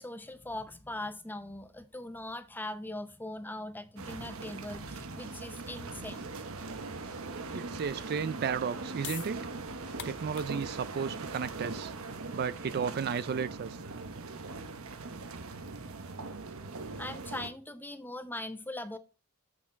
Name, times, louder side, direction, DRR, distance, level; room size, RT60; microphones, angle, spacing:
voice 1, 0.0-6.3 17.0-19.0, left 1 dB, 10° left, 0.7 m, -41 dB
sound 1, 4.0-17.5, right 3 dB, 65° right, 1.1 m, -41 dB
sound 2, 4.7-7.3 7.7-8.2 8.5-11.0 11.4-11.9, right 1 dB, 85° right, 2.3 m, -54 dB
voice 2, 7.5-9.4 10.0-11.9 12.3-13.8, right 6 dB, 45° right, 0.4 m, -33 dB
sound 3, 9.0-15.3, left 12 dB, 55° left, 0.7 m, -49 dB
6.6 x 6.0 x 7.0 m
head